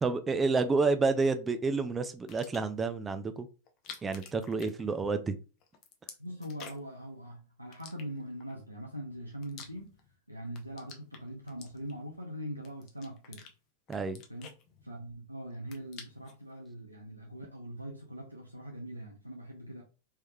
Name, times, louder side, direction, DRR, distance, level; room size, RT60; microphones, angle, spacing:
voice 1, 0.0-3.5 4.0-5.3 13.9-14.2, right 4 dB, 15° right, 0.4 m, -29 dB
sound 1, 2.2-2.8 3.7-5.3 5.6-7.0 7.7-8.5 9.1-10.2 10.5-12.1 12.6-13.5 13.9-15.2 15.5-16.4, left 7 dB, 35° left, 0.6 m, -50 dB
voice 2, 6.2-10.0 10.3-13.5 14.3-14.6 14.8-19.8, equal, 90° right, 0.6 m, -42 dB
3.3 x 3.1 x 2.2 m
figure-of-eight pair, 90°, 0 cm